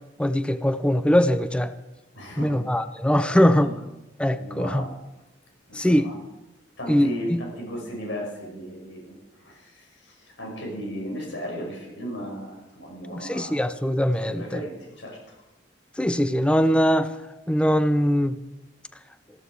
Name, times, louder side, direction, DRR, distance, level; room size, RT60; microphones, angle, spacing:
voice 1, 0.2-1.7 2.4-3.7 4.2-4.8 5.7-6.1 6.9-7.4 13.1-14.6 16.0-17.1 17.5-18.4, equal, 5° left, 11 dB, 0.4 m, -21 dB
voice 2, 2.1-2.6 3.3-3.7 4.3-4.9 5.7-6.1 6.8-9.1 9.4-13.6 14.2-15.2, equal, 85° left, 0 dB, 5.5 m, -35 dB
14.5 x 14.0 x 4.7 m, 1.0 s
head